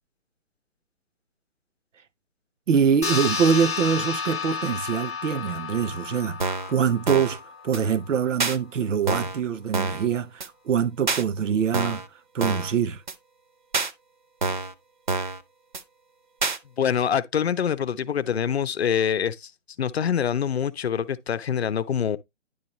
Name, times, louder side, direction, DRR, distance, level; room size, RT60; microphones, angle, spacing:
voice 1, 2.7-7.4 7.6-12.0 12.3-13.0, right 7 dB, 85° right, 0.7 m, -24 dB
sound 1, 3.0-7.9, left 6 dB, 15° left, 0.6 m, -31 dB
sound 2, 6.4-6.7 7.1-7.4 7.7-7.8 8.4-8.6 9.1-9.4 9.7-10.1 10.4-10.5 11.1-11.2 11.7-12.1 12.4-12.7 13.1-13.2 13.7-13.9 14.4-14.7 15.1-15.4 15.7-15.8 16.4-16.6, right 3 dB, 40° right, 0.5 m, -27 dB
voice 2, 16.8-19.5 19.8-22.2, left 8 dB, 60° left, 0.6 m, -25 dB
10.0 x 3.9 x 3.0 m
hypercardioid pair, 165°, 37 cm